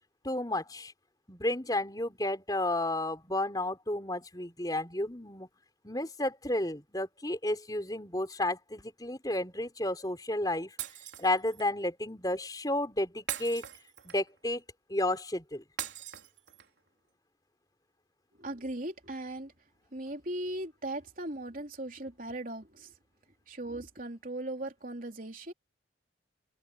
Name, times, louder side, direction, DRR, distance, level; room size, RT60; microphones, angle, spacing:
voice 1, 0.2-0.9 1.3-5.5 5.8-10.7 11.2-13.6 14.0-14.6 14.9-15.6, left 1 dB, 20° left, 5.0 m, -32 dB
Shatter, 10.8-11.7 13.3-14.4 15.8-16.8, right 10 dB, 70° right, 4.0 m, -40 dB
voice 2, 18.4-19.5 19.9-22.9 23.5-25.5, right 1 dB, 45° right, 3.9 m, -38 dB
open air
head